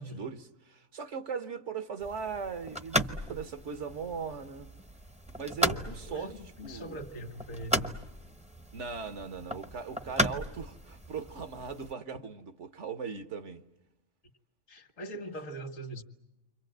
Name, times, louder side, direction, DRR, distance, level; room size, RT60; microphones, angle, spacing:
voice 1, 0.0-4.7 5.3-6.3 6.6-7.0 8.7-13.6, right 6 dB, 65° right, 1.5 m, -39 dB
sound 1, 2.0-11.9, equal, 5° right, 0.7 m, -36 dB
voice 2, 5.6-8.0 14.7-16.0, right 1 dB, 75° left, 2.1 m, -42 dB
29.5 x 25.5 x 8.0 m
omnidirectional pair, 1.4 m